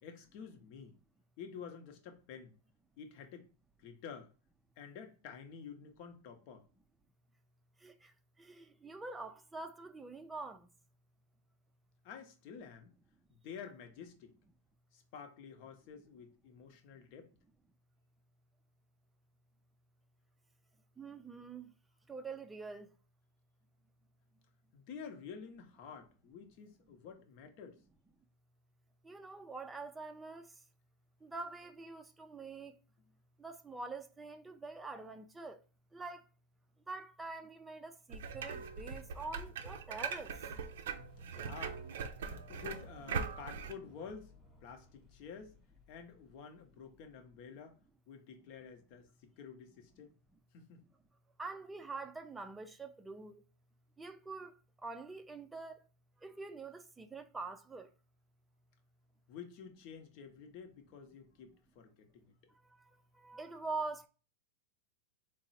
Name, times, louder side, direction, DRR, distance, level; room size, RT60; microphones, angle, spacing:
voice 1, 0.0-1.0 1.4-2.6 3.0-3.5 3.8-4.3 4.8-6.7 12.0-12.9 13.3-14.3 14.9-17.3 24.7-27.8 41.3-41.8 42.2-44.3 44.6-45.5 45.9-47.8 48.1-50.1 50.5-50.8 59.3-62.3, left 6 dB, 50° left, 0.7 m, -50 dB
voice 2, 8.4-10.7 21.0-21.7 22.1-22.9 29.0-30.5 31.2-32.7 33.4-35.6 35.9-36.2 36.9-40.3 51.4-53.4 54.0-54.5 54.8-55.8 56.2-57.9 63.2-64.1, right 3 dB, 10° right, 0.4 m, -45 dB
sound 1, 38.1-43.7, right 6 dB, 75° right, 0.5 m, -41 dB
sound 2, 40.8-47.4, left 1 dB, 20° left, 0.9 m, -61 dB
3.6 x 2.0 x 4.1 m
hypercardioid pair, 125°, 0 cm